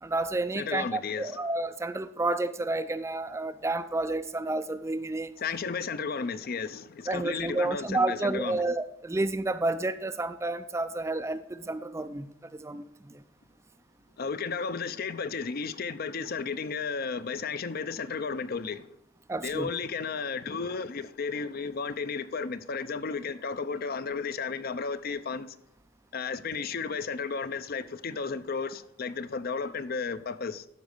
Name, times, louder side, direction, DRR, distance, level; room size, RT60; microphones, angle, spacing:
voice 1, 0.0-5.3 7.1-13.2 19.3-19.7, right 2 dB, 15° right, 0.3 m, -30 dB
voice 2, 0.5-1.4 5.4-8.6 14.2-18.9 19.4-25.6 26.1-30.7, left 5 dB, 45° left, 0.5 m, -33 dB
12.0 x 5.2 x 6.5 m
head